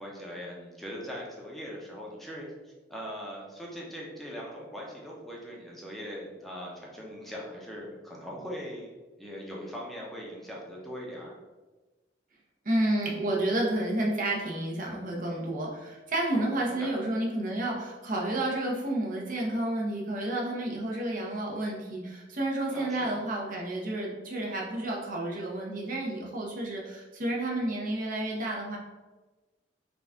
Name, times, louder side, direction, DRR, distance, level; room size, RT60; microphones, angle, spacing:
voice 1, 0.0-8.9 9.2-11.3 16.3-16.9 22.7-23.1, equal, ahead, -3 dB, 0.6 m, -41 dB
voice 2, 12.6-28.8, right 1 dB, 50° right, -2 dB, 0.8 m, -30 dB
3.9 x 2.3 x 3.5 m, 1.2 s
head